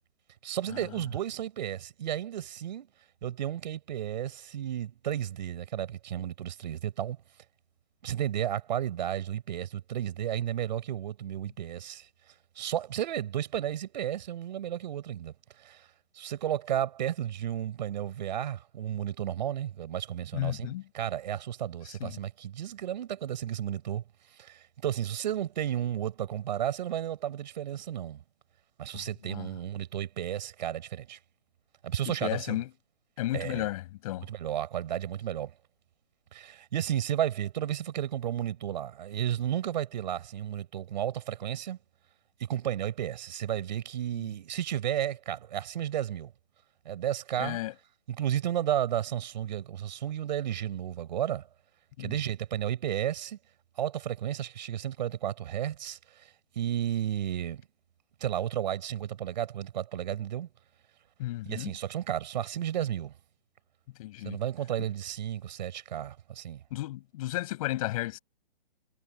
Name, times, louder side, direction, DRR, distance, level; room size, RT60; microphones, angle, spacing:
voice 1, 0.4-2.9 3.2-7.2 8.0-12.1 12.6-15.9 16.1-24.0 24.3-28.2 28.8-31.2 31.8-32.6 33.3-33.7 34.3-35.5 36.3-41.8 42.5-46.3 46.9-47.6 48.1-51.5 52.0-53.4 53.8-56.3 56.6-57.6 58.2-60.5 61.4-63.1 64.2-66.6, right 11 dB, 45° right, 5.5 m, -33 dB
voice 2, 20.3-20.8 21.9-22.2 28.9-29.5 32.1-32.7 33.2-34.3 44.2-44.3 47.4-47.7 52.0-52.1 61.2-61.7 64.0-64.4 66.7-68.2, left 16 dB, 35° left, 7.4 m, -34 dB
hypercardioid pair, 145°, 31 cm